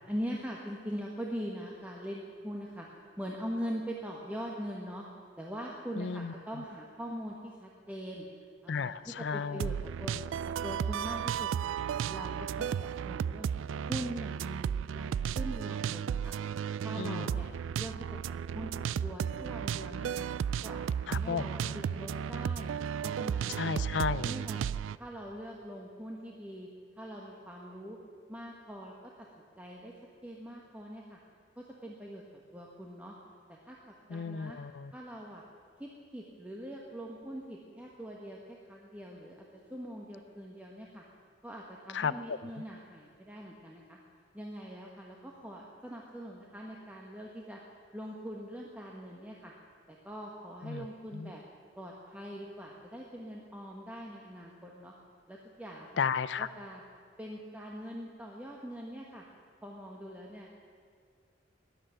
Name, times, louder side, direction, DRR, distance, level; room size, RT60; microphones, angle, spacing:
voice 1, 0.1-5.0 5.4-8.3 8.6-9.7 10.0-10.2 10.4-11.8 12.1-13.5 13.9-16.3 16.8-17.5 17.8-18.7 19.0-20.3 20.6-22.7 23.0-23.9 24.2-24.7 24.9-26.7 27.0-28.0 28.3-29.3 29.6-29.9 30.2-31.2 31.6-33.1 33.5-33.8 34.1-34.6 34.9-35.4 35.8-39.4 39.7-41.0 41.4-44.0 44.3-47.6 47.9-49.5 49.9-51.4 51.7-54.9 55.3-56.0 56.4-56.8 57.2-59.2 59.6-60.5, equal, 10° right, -2 dB, 1.3 m, -42 dB
voice 2, 6.0-6.3 8.7-9.7 17.0-17.3 21.1-21.7 23.6-24.3 34.1-34.9 41.9-42.4 50.6-50.9 51.1-51.3 56.0-56.5, left 6 dB, 65° left, 16 dB, 0.4 m, -33 dB
sound 1, 9.6-25.0, right 8 dB, 85° right, 0.3 m, -34 dB
14.0 x 10.5 x 10.0 m, 2.1 s
head